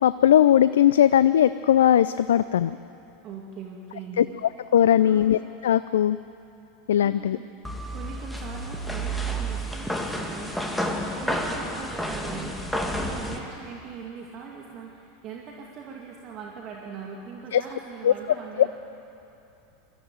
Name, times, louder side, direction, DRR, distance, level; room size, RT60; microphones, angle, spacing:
voice 1, 0.0-2.7 4.2-4.3 4.7-6.2 6.9-7.4 17.5-17.6 18.0-18.1 18.6-18.7, left 10 dB, 75° left, 14 dB, 0.4 m, -19 dB
voice 2, 3.2-4.2 5.0-5.3 7.0-7.7 7.9-18.7, right 6 dB, 45° right, -1 dB, 2.2 m, -41 dB
sound 1, 7.6-13.4, right 1 dB, 5° left, 2.3 m, -30 dB
21.5 x 14.0 x 9.3 m, 2.9 s
hypercardioid pair, 90°, 0 cm